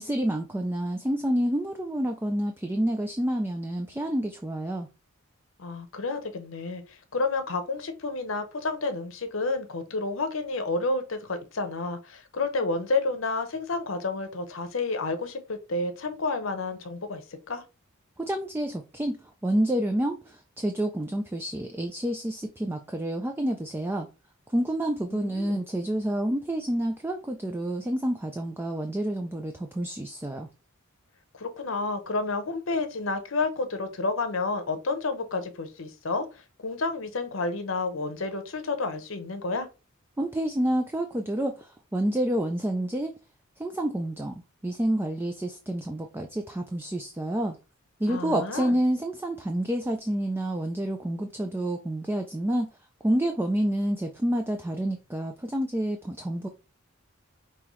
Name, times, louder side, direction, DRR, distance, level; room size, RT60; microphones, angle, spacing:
voice 1, 0.0-4.9 18.2-19.2 19.4-24.1 24.5-30.5 40.2-43.1 43.6-47.6 48.0-52.7 53.0-56.5, right 1 dB, 10° right, 0.3 m, -28 dB
voice 2, 5.6-17.6 25.1-25.6 31.3-39.7 48.1-48.8, left 3 dB, 65° left, 0.8 m, -30 dB
5.5 x 2.9 x 3.1 m
head